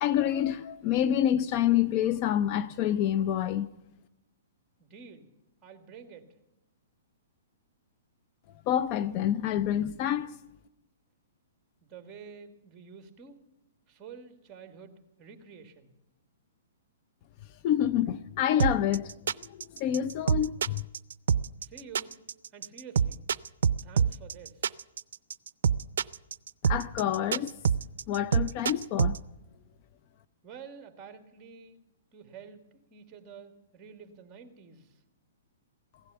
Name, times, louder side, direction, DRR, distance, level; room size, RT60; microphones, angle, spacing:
voice 1, 0.0-3.7 8.7-10.4 17.6-19.1 19.4-20.8 26.7-27.5 28.1-29.2, left 11 dB, 35° left, 0.5 m, -27 dB
voice 2, 4.8-5.3 5.6-6.3 11.8-13.4 13.9-15.9 21.6-22.2 22.5-23.3 23.8-24.7 30.4-35.0, right 6 dB, 20° right, 1.8 m, -49 dB
sound 1, 18.6-29.2, right 7 dB, 75° right, 0.4 m, -26 dB
16.0 x 11.5 x 6.8 m
hypercardioid pair, 145°, 0 cm